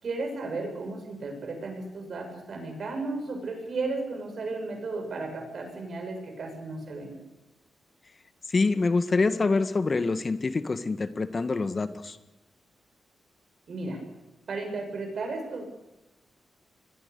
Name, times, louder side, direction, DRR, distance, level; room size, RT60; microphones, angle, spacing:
voice 1, 0.0-7.2 13.7-14.0 14.5-15.6, right 3 dB, 65° right, 5 dB, 6.9 m, -34 dB
voice 2, 8.5-12.2, left 3 dB, 45° left, 10 dB, 1.7 m, -26 dB
26.5 x 21.5 x 6.9 m, 0.97 s
supercardioid pair, 55°, 0 cm